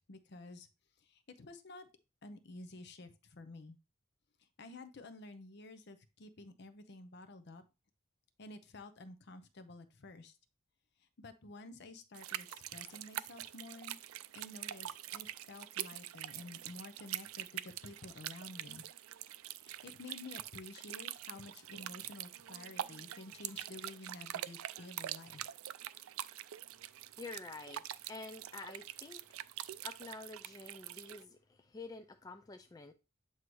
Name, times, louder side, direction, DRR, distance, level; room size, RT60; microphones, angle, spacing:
voice 1, 0.1-0.7 1.0-1.9 2.2-3.8 4.6-7.6 8.4-10.4 11.2-14.0 14.3-18.8 19.6-25.4, left 2 dB, 55° left, 0.7 m, -51 dB
sound 1, 12.1-31.2, right 12 dB, 85° right, 0.3 m, -45 dB
voice 2, 27.2-29.2 29.8-32.9, left 3 dB, 20° left, 0.3 m, -48 dB
7.7 x 2.7 x 4.7 m
head